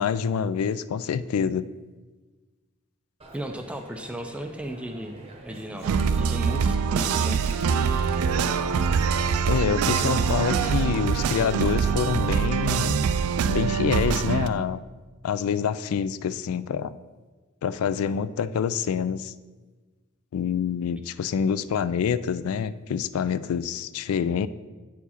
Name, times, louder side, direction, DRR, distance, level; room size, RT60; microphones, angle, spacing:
voice 1, 0.0-1.7 9.5-13.0 13.5-14.8 15.2-17.0 17.6-19.3 20.3-24.5, left 7 dB, 80° left, 15 dB, 0.3 m, -26 dB
Coin (dropping), 3.2-12.4, right 2 dB, 30° right, 0.8 m, -46 dB
voice 2, 3.3-7.4, equal, 5° right, 5 dB, 0.4 m, -35 dB
sound 1, 5.8-14.5, right 6 dB, 85° right, 0.3 m, -24 dB
8.1 x 4.6 x 4.2 m, 1.3 s
head